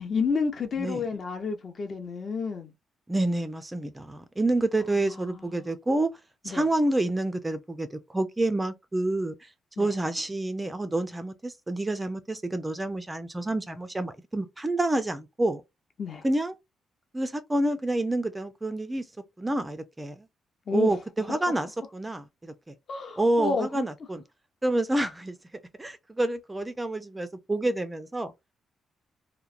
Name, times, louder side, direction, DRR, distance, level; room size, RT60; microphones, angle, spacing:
voice 1, 0.0-2.7 5.1-5.7 6.5-6.7 9.8-9.9 16.0-16.2 20.7-21.0 22.9-23.8, left 5 dB, 45° left, 0.6 m, -30 dB
voice 2, 3.1-6.1 6.4-9.5 9.8-15.6 16.2-16.5 17.1-19.1 19.4-20.2 20.7-22.7 23.2-24.2 24.6-25.4 25.8-28.3, right 2 dB, 15° right, 0.3 m, -28 dB
2.9 x 2.1 x 2.4 m
cardioid pair, 135°, 0 cm